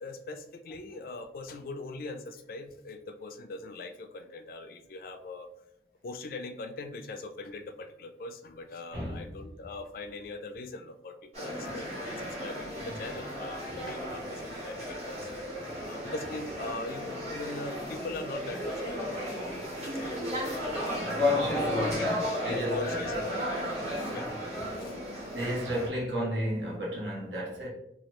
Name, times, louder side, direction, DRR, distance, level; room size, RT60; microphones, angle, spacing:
voice 1, 0.0-5.5 6.0-15.3 15.8-23.5 24.0-24.3 24.8-24.9, left 2 dB, 50° left, 0.3 m, -41 dB
voice 2, 8.9-9.3 19.8-20.0 21.0-23.2 24.1-24.4 25.3-27.7, left 1 dB, 85° right, 1.1 m, -31 dB
sound 1, 11.3-25.9, equal, 35° right, 1.4 m, -35 dB
2.9 x 2.3 x 3.1 m
head